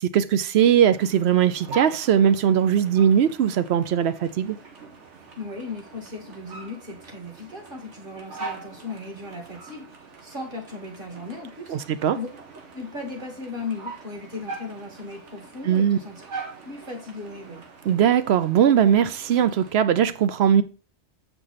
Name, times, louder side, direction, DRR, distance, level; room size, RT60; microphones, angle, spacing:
voice 1, 0.0-4.6 11.7-12.2 15.6-16.0 17.8-20.6, right 9 dB, 70° right, 0.9 m, -20 dB
sound 1, 0.8-19.7, right 3 dB, 85° right, 1.6 m, -42 dB
voice 2, 5.4-11.8 12.1-12.3 12.7-16.3 16.6-17.6, left 3 dB, 50° right, 2.1 m, -37 dB
7.6 x 4.7 x 4.1 m
omnidirectional pair, 1.2 m